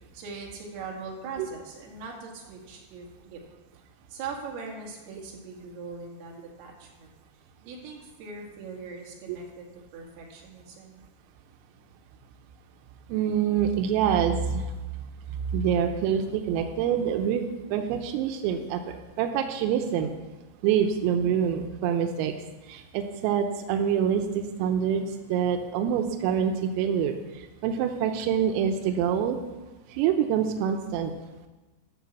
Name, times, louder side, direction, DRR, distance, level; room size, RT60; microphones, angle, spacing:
voice 1, 0.1-3.4 4.1-7.1 7.6-9.7 9.9-11.0, right 4 dB, 55° right, -1 dB, 3.8 m, -41 dB
voice 2, 13.1-14.7 15.5-17.4 17.7-20.1 20.6-22.3 22.7-25.0 25.3-27.2 27.6-29.4 29.9-31.1, right 8 dB, 90° right, 5 dB, 3.5 m, -26 dB
13.5 x 6.8 x 7.1 m, 1.2 s
omnidirectional pair, 5.9 m